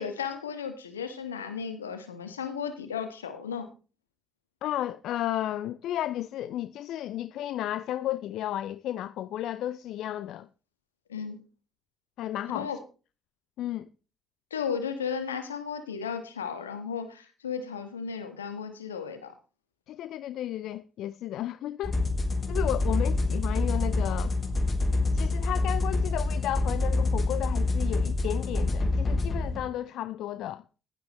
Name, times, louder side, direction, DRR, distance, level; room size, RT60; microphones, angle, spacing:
voice 1, 0.0-3.7 11.1-11.4 12.5-12.8 14.5-19.3, left 6 dB, 90° left, 1.4 m, -34 dB
voice 2, 4.6-10.5 12.2-12.7 13.6-13.9 19.9-22.0 22.5-24.3 25.1-30.6, left 12 dB, 65° left, 0.5 m, -33 dB
sound 1, 21.8-29.6, left 2 dB, 35° left, 3.3 m, -26 dB
15.5 x 11.5 x 3.1 m
hypercardioid pair, 45°, 0 cm